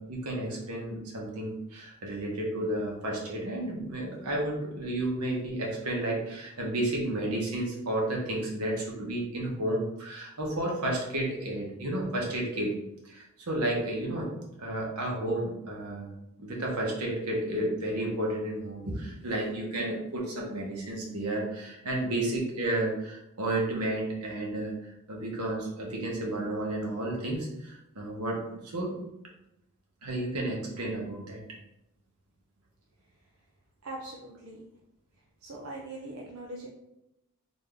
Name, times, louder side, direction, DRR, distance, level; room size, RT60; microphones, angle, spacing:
voice 1, 0.0-12.8 13.0-14.3 14.6-24.7 25.1-29.0 30.0-31.4, right 1 dB, 90° right, -2 dB, 1.1 m, -32 dB
voice 2, 33.8-34.6 35.4-36.7, right 2 dB, 70° right, -2 dB, 0.5 m, -41 dB
4.0 x 2.7 x 3.4 m, 0.86 s
head